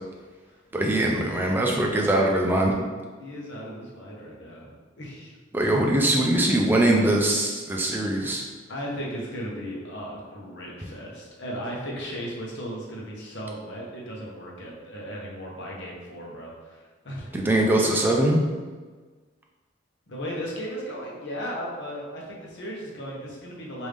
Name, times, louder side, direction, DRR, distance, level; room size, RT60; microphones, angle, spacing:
voice 1, 0.7-2.7 5.5-8.4 17.3-18.4, right 1 dB, 10° right, -1 dB, 0.3 m, -22 dB
voice 2, 3.2-4.7 5.0-5.3 8.7-17.6 20.1-23.9, equal, 65° left, -3 dB, 0.8 m, -36 dB
3.3 x 2.6 x 3.3 m, 1.4 s
head